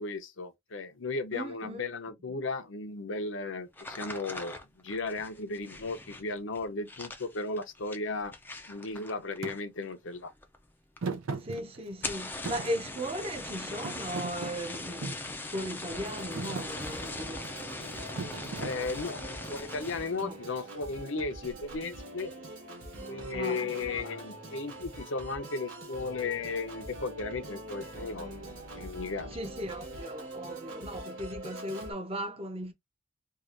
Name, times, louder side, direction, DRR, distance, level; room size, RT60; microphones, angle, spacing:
voice 1, 0.0-8.3 8.7-10.3 18.6-19.2 19.5-22.3 23.1-28.4 28.7-29.3, left 3 dB, 65° left, 0.7 m, -35 dB
voice 2, 1.3-1.8 11.4-17.5 20.2-20.4 23.3-23.6 29.3-32.7, equal, 30° right, 0.7 m, -37 dB
sound 1, 3.7-9.9 10.1-10.7 11.0-11.1 11.3-11.4 11.9-20.2 20.7-21.0 21.4-21.8, left 2 dB, 10° left, 0.4 m, -41 dB
Thump thud, 9.4-9.6 11.0-12.1 12.4-13.4 13.8-15.3 15.9-16.1 16.3-16.7 18.2-19.2, right 4 dB, 85° right, 0.6 m, -38 dB
Organ, 15.9-31.9, right 1 dB, 70° right, 2.4 m, -44 dB
4.6 x 2.4 x 2.5 m
head